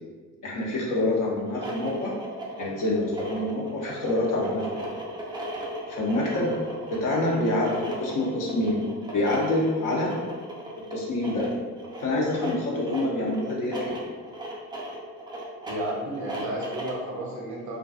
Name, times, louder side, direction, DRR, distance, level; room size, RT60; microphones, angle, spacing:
voice 1, 0.4-2.1 2.6-4.9 5.9-6.5 7.0-8.8 9.1-10.1 10.9-11.5 12.0-14.0, left 1 dB, 40° left, -3 dB, 0.7 m, -26 dB
sound 1, 1.4-17.1, right 1 dB, 10° right, 0.4 m, -37 dB
voice 2, 15.7-17.8, right 1 dB, 35° right, -3 dB, 0.8 m, -32 dB
2.3 x 2.2 x 2.5 m, 1.5 s
hypercardioid pair, 55°, 48 cm